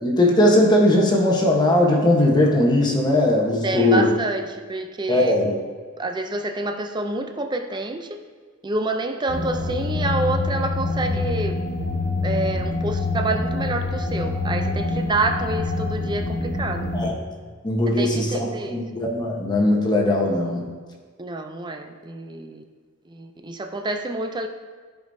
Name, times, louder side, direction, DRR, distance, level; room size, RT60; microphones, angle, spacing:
voice 1, 0.0-4.1 5.1-5.5 16.9-17.1 17.6-20.7, left 1 dB, 20° left, -1 dB, 1.0 m, -19 dB
voice 2, 3.6-5.3 6.0-8.2 8.6-11.6 12.2-16.9 18.0-18.8 21.2-22.6 23.1-24.5, right 2 dB, 20° right, 5 dB, 0.5 m, -28 dB
sound 1, 9.3-17.1, left 2 dB, 65° left, 1.7 m, -26 dB
14.0 x 5.1 x 2.7 m, 1.5 s
head